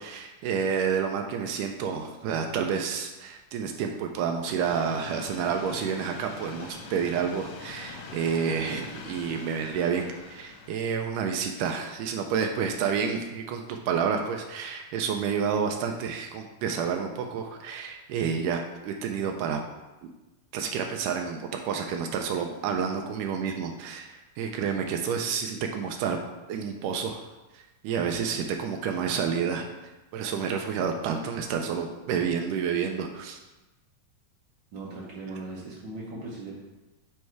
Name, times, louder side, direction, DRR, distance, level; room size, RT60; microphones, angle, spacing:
voice 1, 0.0-19.6 20.0-20.1 20.5-26.2 26.5-27.2 27.5-29.7 30.1-33.4, right 6 dB, 85° right, 4 dB, 2.1 m, -29 dB
sound 1, 4.6-10.7, left 4 dB, 75° left, 1.6 m, -43 dB
voice 2, 34.7-36.6, right 2 dB, 70° right, -5 dB, 1.1 m, -38 dB
7.9 x 3.2 x 4.6 m, 1.1 s
omnidirectional pair, 3.6 m